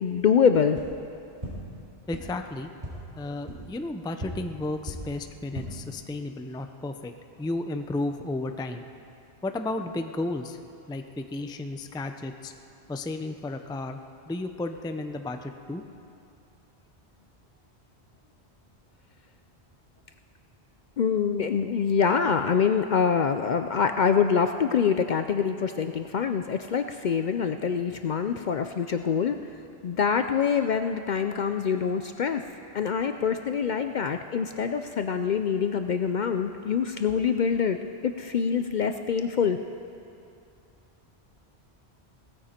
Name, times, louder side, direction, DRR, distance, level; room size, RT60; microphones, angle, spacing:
voice 1, 0.0-0.8 21.0-29.4 29.8-32.4 32.7-37.8 38.0-39.6, left 6 dB, 55° left, 8 dB, 0.5 m, -25 dB
sound 1, 0.7-0.8 1.4-1.5 2.1-2.2 2.8-2.9 3.4-3.5 4.2-4.3 4.8-4.9 5.4-5.6, equal, 40° right, 4.1 m, -36 dB
voice 2, 2.1-2.7 3.1-7.1 7.4-8.8 9.4-10.6 10.9-12.5 12.9-14.0 14.3-15.8, left 2 dB, 5° left, 7 dB, 0.3 m, -33 dB
17.5 x 14.0 x 4.4 m, 2.7 s
omnidirectional pair, 1.1 m